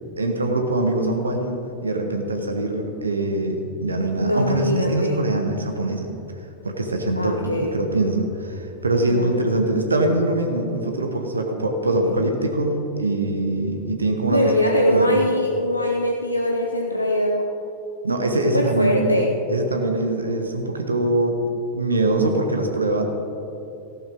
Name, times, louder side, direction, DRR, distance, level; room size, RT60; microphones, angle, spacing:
voice 1, 0.2-6.2 6.6-14.5 14.9-15.1 18.0-19.2 19.5-21.4 21.7-23.0, right 2 dB, 75° right, 4 dB, 1.1 m, -23 dB
voice 2, 4.2-5.3 7.2-7.7 9.1-9.4 12.0-12.1 14.3-17.5 18.4-19.3, equal, 90° left, 1 dB, 0.7 m, -21 dB
14.5 x 12.0 x 3.6 m, 2.8 s
figure-of-eight pair, 90°, 0 cm